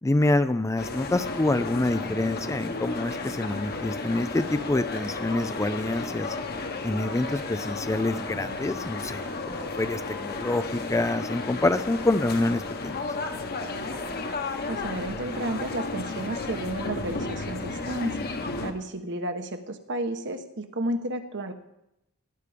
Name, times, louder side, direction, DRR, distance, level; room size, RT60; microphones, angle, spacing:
voice 1, 0.0-6.4 6.8-13.0, left 2 dB, 15° left, 11 dB, 0.4 m, -27 dB
sound 1, 0.8-18.7, left 3 dB, 45° left, 1.3 m, -33 dB
voice 2, 14.7-18.2 18.6-21.5, right 1 dB, 55° right, 7 dB, 1.2 m, -32 dB
17.5 x 10.0 x 5.1 m, 0.85 s
head